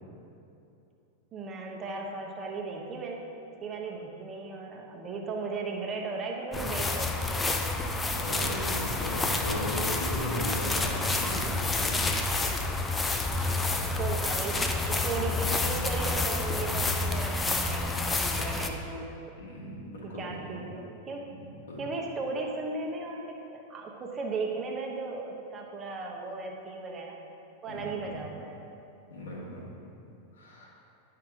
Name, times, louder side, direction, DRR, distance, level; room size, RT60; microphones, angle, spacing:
voice 1, 1.3-3.2 3.6-7.8 13.4-19.1 20.0-21.2 21.8-27.2 27.6-28.6, right 3 dB, 25° right, 0 dB, 1.0 m, -36 dB
sound 1, 6.5-18.7, left 2 dB, 15° left, 0.5 m, -29 dB
voice 2, 8.1-12.0 19.4-20.6 21.3-21.8 27.7-28.2 29.1-29.7 30.3-30.7, left 1 dB, 65° left, -5 dB, 1.9 m, -37 dB
10.5 x 5.7 x 3.7 m, 2.8 s
figure-of-eight pair, 90°, 0 cm